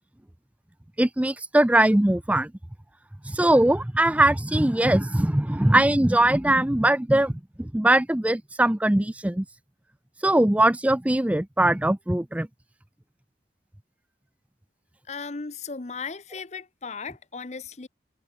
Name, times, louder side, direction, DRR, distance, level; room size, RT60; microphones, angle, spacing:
voice 1, 1.0-2.5 3.3-7.3 7.6-9.4 10.2-12.5, right 1 dB, 10° right, 0.4 m, -21 dB
voice 2, 15.1-17.9, left 5 dB, 40° left, 0.8 m, -36 dB
head